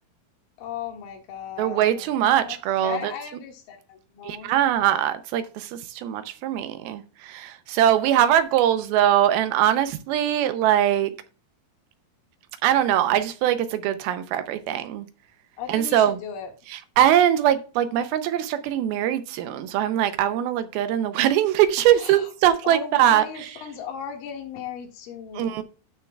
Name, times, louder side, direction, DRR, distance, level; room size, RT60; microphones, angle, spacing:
voice 1, 0.6-2.2 2.4-2.5 2.8-4.5 15.6-16.5 21.9-22.3 22.6-25.6, left 8 dB, 65° left, 3.2 m, -36 dB
voice 2, 1.6-3.1 4.2-11.1 12.6-15.1 15.7-16.2 16.7-23.2 25.4-25.6, right 11 dB, 85° right, 2.5 m, -22 dB
15.5 x 6.4 x 2.3 m
omnidirectional pair, 4.5 m